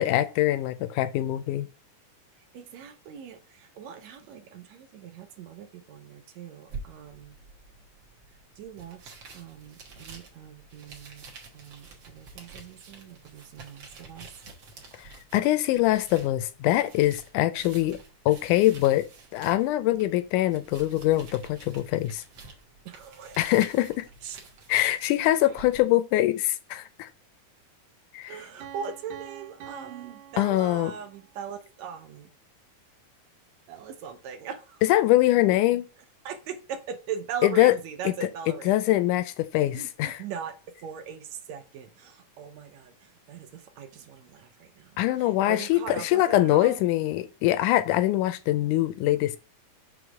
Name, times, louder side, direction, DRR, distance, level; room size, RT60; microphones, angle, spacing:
voice 1, 0.0-1.7 15.0-18.0 18.3-19.1 19.3-22.2 23.4-24.1 24.7-27.1 28.1-28.3 30.4-30.9 34.9-35.9 37.4-37.7 38.7-39.2 39.5-40.2 45.0-49.4, left 15 dB, 80° left, 2.1 m, -23 dB
voice 2, 2.4-7.4 8.3-11.2 11.5-14.3 22.9-23.6 24.2-24.4 25.4-25.6 28.3-32.3 33.7-34.8 36.3-39.0 39.7-40.5 40.8-46.8, right 7 dB, 70° right, 2.0 m, -40 dB
sound 1, 6.7-25.8, right 4 dB, 50° right, 1.6 m, -48 dB
Piano, 28.6-31.4, right 10 dB, 90° right, 2.7 m, -46 dB
6.3 x 3.5 x 5.9 m
omnidirectional pair, 3.6 m